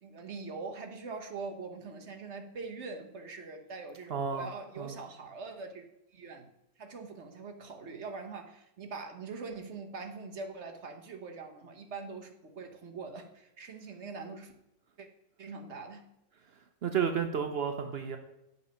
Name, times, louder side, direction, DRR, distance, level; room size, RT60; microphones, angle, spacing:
voice 1, 0.0-6.5 6.8-14.5 15.0-15.1 15.4-16.1, right 4 dB, 50° right, 4 dB, 1.0 m, -43 dB
voice 2, 4.1-4.5 4.8-4.9 16.8-18.2, right 7 dB, 80° right, 6 dB, 0.5 m, -31 dB
8.2 x 5.4 x 5.6 m, 0.88 s
omnidirectional pair, 1.9 m